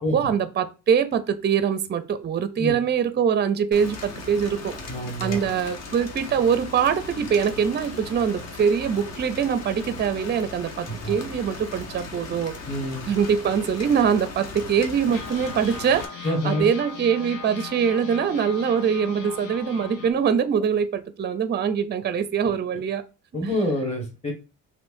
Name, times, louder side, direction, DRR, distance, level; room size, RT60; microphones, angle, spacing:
voice 1, 0.1-4.7 5.2-12.5 13.1-23.0, right 7 dB, 30° right, 12 dB, 0.5 m, -23 dB
Rain, 3.7-16.1, left 3 dB, 50° left, 0.9 m, -38 dB
voice 2, 4.9-5.4 10.9-11.2 12.6-13.1 16.2-16.7 23.3-24.3, left 1 dB, 20° left, 1 dB, 1.5 m, -27 dB
sound 1, 15.1-20.1, left 5 dB, 75° left, 1.2 m, -39 dB
5.5 x 2.6 x 2.6 m, 0.31 s
cardioid pair, 130°, 33 cm